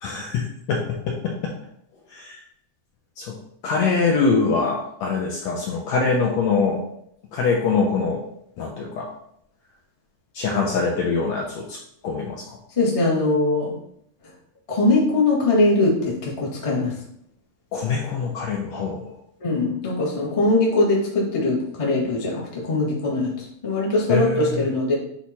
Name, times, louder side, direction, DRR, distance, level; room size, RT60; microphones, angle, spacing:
voice 1, 0.0-1.5 2.1-2.4 3.2-3.4 3.6-6.8 7.3-8.2 8.6-9.1 10.3-11.8 12.0-12.6 17.7-19.1 24.1-24.6, left 4 dB, 75° left, -1 dB, 1.6 m, -23 dB
voice 2, 12.8-13.7 14.7-16.9 19.4-24.9, left 2 dB, 30° left, -5 dB, 0.6 m, -21 dB
8.2 x 3.0 x 4.1 m, 0.72 s
omnidirectional pair, 3.8 m